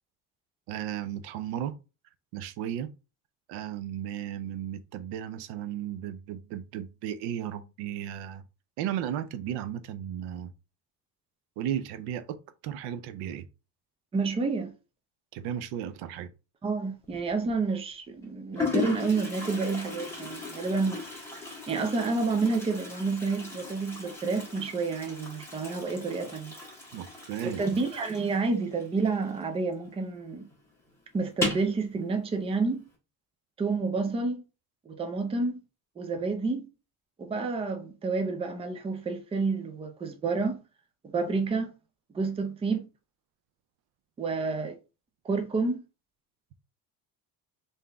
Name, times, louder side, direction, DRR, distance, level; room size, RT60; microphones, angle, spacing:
voice 1, 0.7-1.7 2.3-2.9 3.5-8.4 8.8-10.5 11.6-12.4 12.6-13.4 15.3-16.3 26.9-27.6, right 10 dB, 90° right, 0.6 m, -35 dB
voice 2, 14.1-14.7 16.6-21.1 21.7-26.6 27.4-30.5 31.1-32.8 33.6-34.4 34.9-35.6 36.0-36.7 37.2-40.6 41.0-41.7 42.1-42.9 44.2-44.8 45.2-45.8, right 4 dB, 15° right, 0.4 m, -29 dB
Toilet flush, 17.0-17.5 18.2-18.3 18.5-29.8 30.1-30.2 30.5-30.6 31.3-31.8, left 3 dB, 5° left, 1.4 m, -37 dB
3.7 x 2.7 x 3.3 m
cardioid pair, 150°, 39 cm